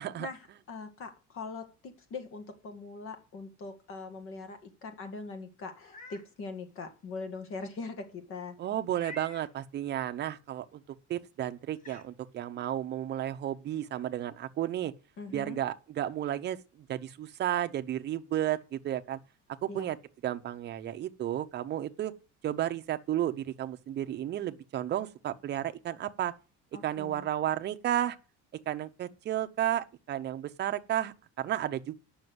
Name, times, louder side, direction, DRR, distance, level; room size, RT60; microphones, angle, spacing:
voice 1, 0.2-8.6 15.2-15.6 19.7-19.9 26.7-27.3, left 4 dB, 45° left, 1.9 m, -42 dB
Meow, 5.7-6.3 6.8-6.9 8.9-9.5 11.1-11.2 11.8-12.1, left 2 dB, 25° left, 1.7 m, -47 dB
voice 2, 8.6-10.8 11.1-14.9 15.3-19.2 19.6-20.0 20.2-22.1 22.4-26.3 26.8-28.2 28.7-32.0, right 12 dB, 35° right, 0.8 m, -33 dB
9.3 x 6.4 x 8.0 m
cardioid pair, 175°, 29 cm